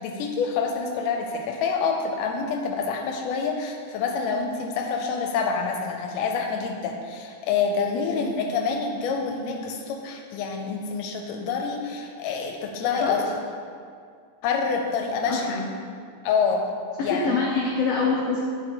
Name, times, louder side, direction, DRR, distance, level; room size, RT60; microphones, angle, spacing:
voice 1, 0.0-13.2 14.4-15.6 16.2-16.6 17.0-17.6, left 5 dB, 85° left, 2 dB, 2.2 m, -27 dB
voice 2, 7.9-8.3 13.0-13.2 15.3-15.6 17.0-18.4, left 4 dB, 70° left, -3 dB, 1.5 m, -25 dB
9.0 x 5.4 x 4.6 m, 2.2 s
omnidirectional pair, 3.7 m